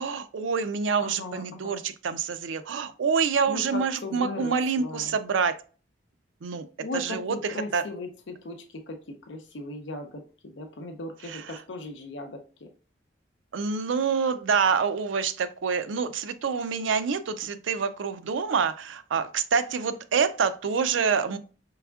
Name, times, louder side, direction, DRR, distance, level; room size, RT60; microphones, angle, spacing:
voice 1, 0.0-5.6 6.4-6.7 6.9-7.9 11.2-11.6 13.5-21.4, right 5 dB, 90° right, 11 dB, 0.4 m, -27 dB
voice 2, 1.0-1.8 3.5-5.1 6.8-12.7, left 2 dB, 75° left, 4 dB, 0.6 m, -38 dB
4.7 x 3.4 x 2.3 m, 0.38 s
head